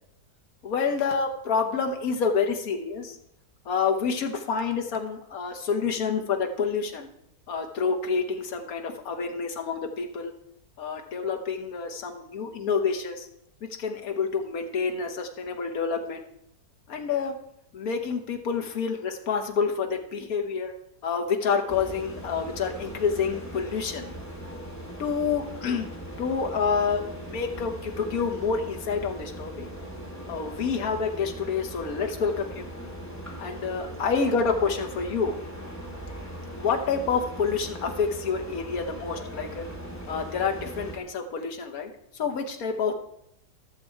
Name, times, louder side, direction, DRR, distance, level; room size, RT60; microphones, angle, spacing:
voice 1, 0.6-3.2 3.6-7.1 7.5-10.3 10.8-13.3 13.6-16.2 16.9-17.3 17.7-20.7 21.0-24.1 25.0-25.9 26.2-29.7 30.3-32.7 33.4-35.3 36.6-39.6 40.1-42.9, left 5 dB, 60° left, 5 dB, 1.5 m, -28 dB
sound 1, 21.7-41.0, equal, 10° left, 1.6 m, -39 dB
13.0 x 6.9 x 4.5 m, 0.75 s
omnidirectional pair, 1.8 m